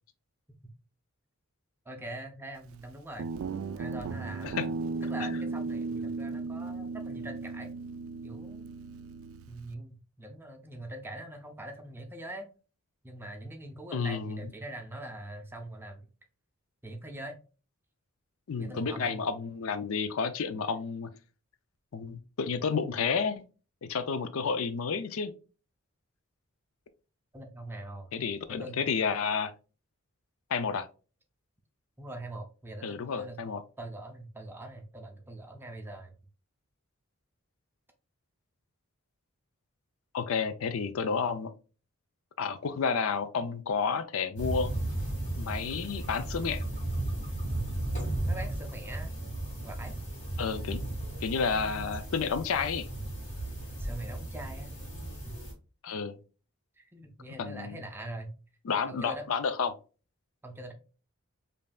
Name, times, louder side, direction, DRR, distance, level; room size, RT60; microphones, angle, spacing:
voice 1, 1.9-3.3 3.8-4.6 5.0-7.7 8.2-8.7 9.5-12.5 13.0-16.0 16.8-17.4 18.6-19.2 27.3-28.1 28.5-28.8 32.0-33.4 33.8-36.2 48.3-49.1 49.6-50.0 53.8-54.7 55.3-55.4 55.9-56.0 56.8-58.3 58.9-59.3 60.4-60.7, right 1 dB, 10° right, 4 dB, 0.6 m, -43 dB
Guitar, 3.2-9.7, right 4 dB, 65° right, 0.3 m, -36 dB
voice 2, 13.9-14.4 18.5-21.1 21.9-23.4 23.8-25.3 28.1-29.5 30.5-30.9 32.8-33.6 40.1-41.5 42.4-44.7 45.3-46.6 50.4-50.8 51.2-52.9 55.8-56.2 57.4-57.8 58.6-59.7, left 5 dB, 70° left, 12 dB, 0.4 m, -31 dB
sound 1, 44.4-55.5, right 1 dB, 35° left, 2.0 m, -35 dB
5.3 x 2.6 x 2.3 m, 0.34 s
head